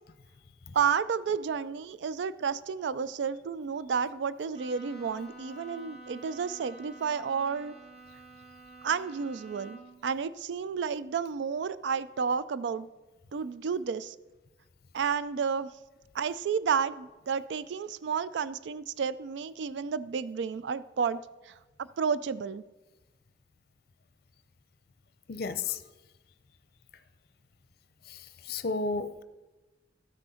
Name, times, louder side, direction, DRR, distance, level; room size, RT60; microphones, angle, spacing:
voice 1, 0.7-7.7 8.8-12.9 13.3-14.2 14.9-15.7 16.1-21.5 21.8-22.6, right 6 dB, 80° right, 16 dB, 0.4 m, -31 dB
Bowed string instrument, 4.5-10.1, right 2 dB, 35° right, 1.9 m, -49 dB
voice 2, 25.3-25.8 28.1-28.2 28.5-29.2, left 4 dB, 55° left, 12 dB, 0.6 m, -32 dB
13.0 x 6.2 x 5.6 m, 1.1 s
head